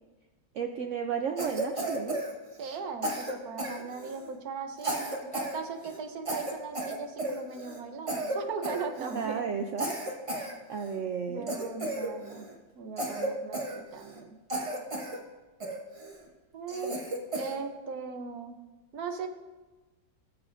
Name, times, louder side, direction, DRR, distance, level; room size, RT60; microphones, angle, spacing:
voice 1, 0.5-2.2 9.0-11.5, right 6 dB, 90° right, 5 dB, 0.6 m, -34 dB
Cough, 1.4-2.8 3.0-4.3 4.8-5.6 5.8-6.0 6.3-7.8 8.1-8.4 8.6-9.3 9.8-11.0 11.5-12.5 13.0-14.2 14.5-15.2 15.6-16.2 16.7-17.6, right 1 dB, 25° right, 0.8 m, -34 dB
voice 2, 2.6-9.5 11.3-12.5 12.8-14.4 16.5-17.0 17.4-18.6 18.9-19.3, right 5 dB, 60° right, 6 dB, 1.3 m, -38 dB
18.0 x 6.9 x 2.6 m, 1.2 s
omnidirectional pair, 1.9 m